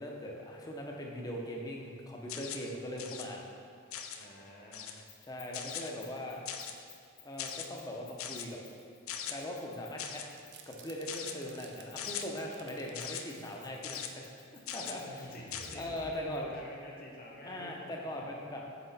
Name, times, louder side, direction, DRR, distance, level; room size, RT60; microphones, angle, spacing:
voice 1, 0.0-3.4 5.2-6.4 7.2-8.6 9.3-10.2 10.7-14.3 14.7-15.0 15.7-16.5 17.4-18.6, left 1 dB, 20° left, -1 dB, 0.6 m, -40 dB
sound 1, 2.3-2.7 3.0-3.3 3.9-4.2 4.7-5.0 5.5-5.9 6.5-6.8 7.4-7.7 8.2-8.5 9.1-9.4 10.0-10.3 11.1-11.4 12.0-12.2 12.9-13.2 13.8-14.1 14.7-15.0 15.5-15.8, left 8 dB, 85° left, 0.4 m, -40 dB
voice 2, 4.1-4.9 14.8-18.2, left 1 dB, 45° left, -2 dB, 0.9 m, -49 dB
Keys jangling, 5.1-10.8 11.6-16.4, left 9 dB, 60° left, 1.2 m, -59 dB
sound 2, 10.2-12.9 13.3-14.1 14.6-14.9 15.2-16.9, right 4 dB, 55° right, 0.5 m, -55 dB
5.7 x 4.1 x 4.1 m, 2.3 s
head